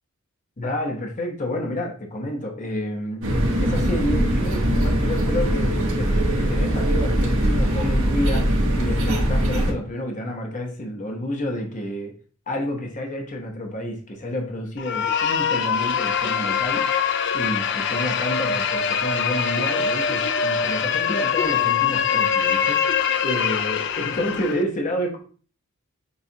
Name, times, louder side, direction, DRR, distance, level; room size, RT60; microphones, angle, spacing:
voice 1, 0.6-3.3 3.6-12.1 12.5-16.9 17.3-25.2, left 1 dB, 35° left, 2 dB, 0.8 m, -29 dB
sound 1, 3.2-9.7, right 1 dB, 65° right, 1.1 m, -21 dB
sound 2, 14.8-24.6, left 7 dB, 55° left, 0.4 m, -23 dB
6.9 x 2.4 x 2.7 m, 0.41 s
head